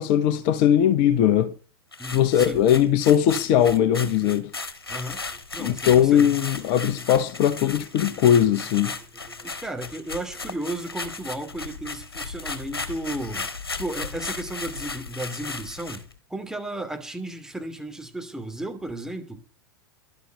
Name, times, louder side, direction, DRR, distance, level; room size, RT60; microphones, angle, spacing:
voice 1, 0.0-1.5 2.1-4.5 5.6-8.9, left 10 dB, 45° left, 1.2 m, -20 dB
sound 1, 1.9-16.1, left 3 dB, 85° left, 1.5 m, -35 dB
voice 2, 2.0-2.7 4.9-5.2 5.5-6.3 9.3-16.0 16.3-19.4, right 1 dB, 5° right, 2.7 m, -34 dB
12.0 x 7.2 x 7.8 m
figure-of-eight pair, 95°, 12 cm